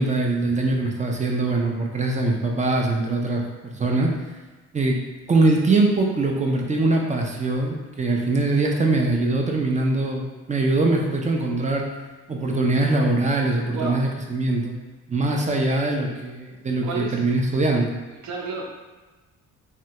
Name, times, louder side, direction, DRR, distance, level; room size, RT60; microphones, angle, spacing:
voice 1, 0.0-4.1 4.7-5.0 5.3-11.9 12.3-14.7 15.1-17.9, right 2 dB, 25° right, 0 dB, 0.4 m, -22 dB
voice 2, 13.7-14.0 16.8-17.2 18.2-18.7, right 3 dB, 65° right, -2 dB, 0.7 m, -30 dB
3.2 x 2.3 x 2.8 m, 1.2 s
cardioid pair, 90°, 30 cm